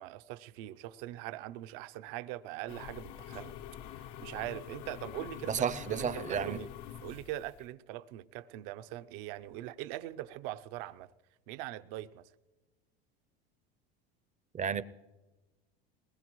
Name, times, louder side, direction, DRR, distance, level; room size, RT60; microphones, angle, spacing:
voice 1, 0.0-3.5 4.0-5.5 5.9-6.7 7.0-11.1 11.5-12.3, right 14 dB, 65° right, 0.7 m, -42 dB
sound 1, 2.7-7.7, left 10 dB, 60° left, 0.7 m, -45 dB
voice 2, 5.5-6.6 14.5-14.8, right 8 dB, 25° right, 0.6 m, -32 dB
21.0 x 20.0 x 3.1 m
supercardioid pair, 100°, 30 cm